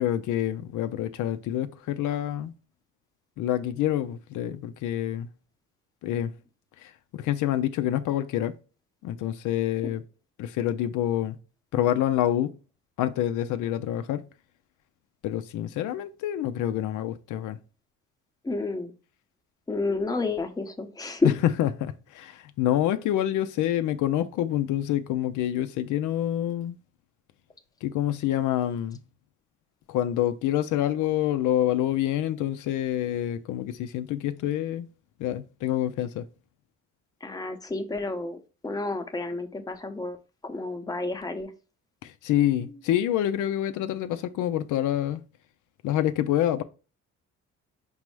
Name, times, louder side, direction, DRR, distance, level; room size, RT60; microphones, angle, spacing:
voice 1, 0.0-2.5 3.4-5.3 6.0-6.3 6.8-8.5 9.0-10.0 10.4-11.4 11.7-12.5 13.0-14.3 15.2-17.6 21.2-26.8 27.8-29.0 29.9-34.9 35.2-36.3 42.0-45.2 45.8-46.6, left 12 dB, 80° left, 0.5 m, -27 dB
voice 2, 18.4-18.9 19.7-21.3 37.2-38.4 38.6-40.2 40.4-41.5, left 3 dB, 10° left, 0.7 m, -30 dB
5.3 x 2.0 x 4.5 m
cardioid pair, 90°, 30 cm